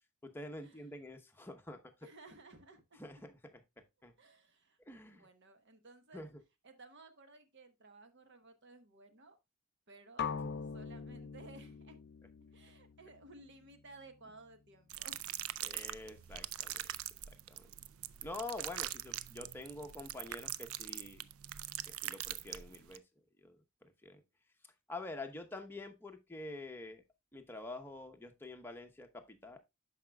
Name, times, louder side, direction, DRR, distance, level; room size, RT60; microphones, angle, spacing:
voice 1, 0.2-1.9 3.0-3.3 4.0-4.1 4.9-5.2 6.1-6.3 10.4-10.5 15.6-16.8 17.5-17.6 18.2-21.3 21.9-23.0 23.4-24.2 24.9-27.0 27.3-29.6, left 2 dB, 10° left, 0.9 m, -47 dB
voice 2, 2.0-3.0 4.2-4.8 5.1-6.3 6.6-9.4 9.9-10.2 10.6-12.0 12.5-15.2, right 2 dB, 60° right, 1.1 m, -57 dB
sound 1, 10.2-14.1, left 6 dB, 50° left, 0.4 m, -43 dB
sound 2, 14.9-23.0, right 13 dB, 80° right, 0.4 m, -43 dB
12.0 x 4.9 x 2.2 m
head